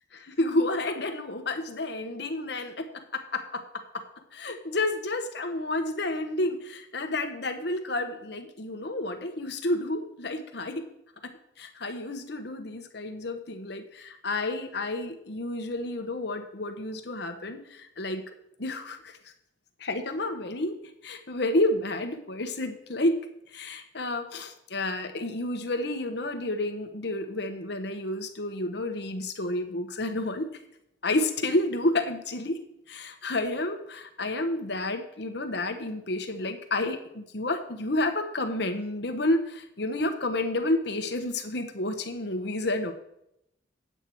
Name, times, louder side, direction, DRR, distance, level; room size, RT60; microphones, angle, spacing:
voice 1, 0.1-4.1 4.3-10.9 11.2-11.3 11.6-18.2 18.6-19.1 19.8-20.8 21.0-23.2 23.5-30.5 31.0-32.6 32.9-42.9, left 2 dB, 60° left, 6 dB, 1.1 m, -30 dB
8.7 x 8.2 x 4.6 m, 0.78 s
head